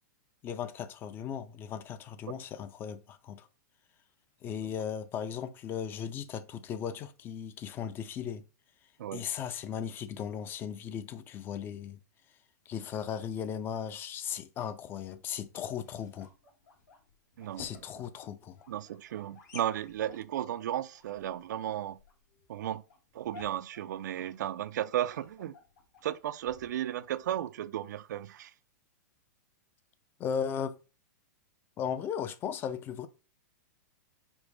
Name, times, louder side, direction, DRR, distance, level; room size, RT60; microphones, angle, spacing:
voice 1, 0.4-3.5 4.4-8.4 9.1-12.0 12.7-16.3 17.6-18.6 30.2-30.8 31.8-33.1, left 8 dB, 20° left, 0.4 m, -37 dB
sound 1, 15.2-27.5, left 4 dB, 70° left, 1.8 m, -55 dB
voice 2, 17.4-17.7 18.7-22.0 22.5-22.8 23.1-25.5 26.0-28.5, right 11 dB, 75° right, 0.4 m, -34 dB
5.2 x 2.0 x 4.7 m
hypercardioid pair, 145°, 10 cm